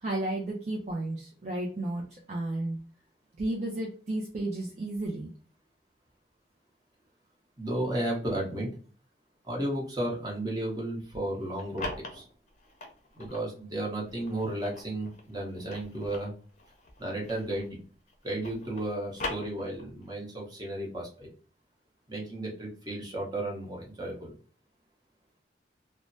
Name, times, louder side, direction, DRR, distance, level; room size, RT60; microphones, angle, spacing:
voice 1, 0.0-2.8 3.4-5.3, right 1 dB, 40° right, -1 dB, 0.5 m, -33 dB
voice 2, 7.6-8.7 9.4-12.2 13.2-16.3 17.0-17.8 18.2-21.3 22.1-24.3, right 1 dB, 20° right, -2 dB, 0.9 m, -33 dB
sound 1, 11.3-13.5 14.0-17.8 18.1-20.1, left 2 dB, 45° left, 0.6 m, -41 dB
3.2 x 2.1 x 2.5 m, 0.41 s
head